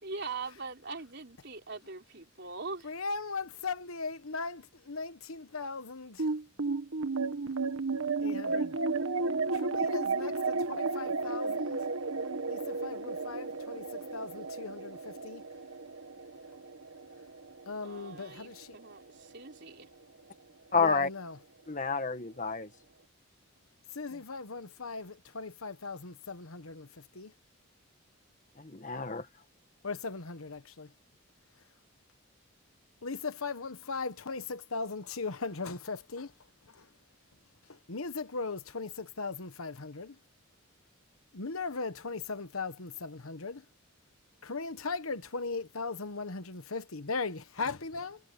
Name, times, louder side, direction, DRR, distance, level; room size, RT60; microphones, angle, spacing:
voice 1, 0.0-2.9 17.8-19.9, right 4 dB, 55° right, 4.2 m, -42 dB
voice 2, 2.8-6.3 8.2-8.8 9.5-11.8 12.5-15.4 17.7-18.8 20.8-21.4 23.9-27.3 29.8-30.9 33.0-36.3 36.7-36.9 37.7-40.2 41.3-43.6 44.4-48.2, left 4 dB, 80° left, 1.2 m, -38 dB
sound 1, 6.2-18.8, right 3 dB, 75° right, 1.5 m, -33 dB
voice 3, 20.7-21.1 21.7-22.7 28.6-29.3, left 4 dB, 35° left, 1.5 m, -29 dB
head